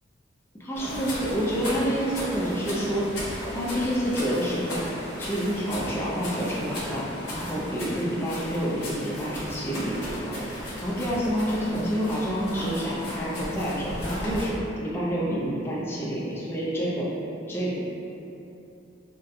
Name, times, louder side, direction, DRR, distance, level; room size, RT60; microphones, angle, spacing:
voice 1, 0.6-3.0 3.5-4.8 5.2-7.1 7.3-14.5 14.8-17.1 17.5-17.8, equal, 10° left, -6 dB, 0.4 m, -28 dB
sound 1, 0.7-14.5, left 1 dB, 60° left, 0.9 m, -35 dB
3.9 x 2.2 x 2.5 m, 2.8 s
head